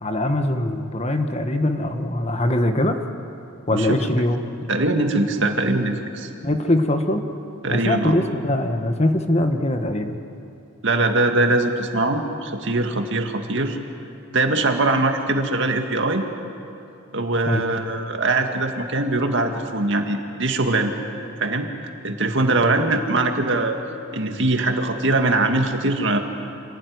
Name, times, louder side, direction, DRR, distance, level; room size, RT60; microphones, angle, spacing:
voice 1, 0.0-3.0 3.7-4.4 6.4-7.2 7.7-10.2 17.5-17.6, left 1 dB, 30° left, 6 dB, 1.4 m, -22 dB
voice 2, 3.7-4.1 4.7-6.3 7.6-8.2 10.8-13.8 14.3-16.2 17.1-20.9 21.4-21.7 22.0-23.8 24.1-26.2, right 2 dB, 60° right, 4 dB, 2.1 m, -22 dB
26.0 x 17.5 x 9.6 m, 2.7 s
head